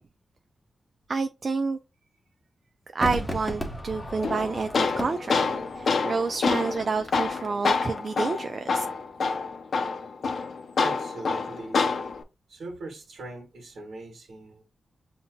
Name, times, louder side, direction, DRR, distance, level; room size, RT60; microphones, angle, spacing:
voice 1, 1.1-1.8 2.9-5.5 5.8-8.8, right 4 dB, 45° right, 0.3 m, -29 dB
Crowd / Fireworks, 3.0-8.4 8.7-8.8, equal, 10° left, 0.9 m, -36 dB
Tools, 4.2-12.2, left 4 dB, 60° left, 0.6 m, -27 dB
voice 2, 10.8-11.9 12.5-14.6, right 2 dB, 70° right, 1.5 m, -40 dB
7.4 x 2.7 x 2.2 m
wide cardioid pair, 135°, 0 cm